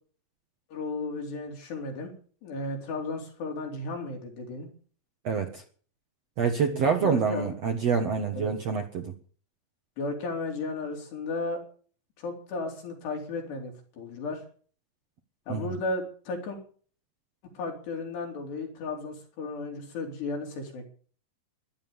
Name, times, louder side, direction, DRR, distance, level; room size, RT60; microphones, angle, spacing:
voice 1, 0.7-2.1 2.4-4.7 6.6-7.6 8.3-8.5 10.0-11.6 12.2-14.4 15.5-16.6 17.4-20.9, left 3 dB, 80° left, 1 dB, 6.0 m, -34 dB
voice 2, 5.2-5.6 6.4-9.1 15.5-15.8, right 6 dB, 55° right, 4 dB, 1.9 m, -27 dB
15.0 x 11.5 x 7.1 m, 0.44 s
omnidirectional pair, 4.8 m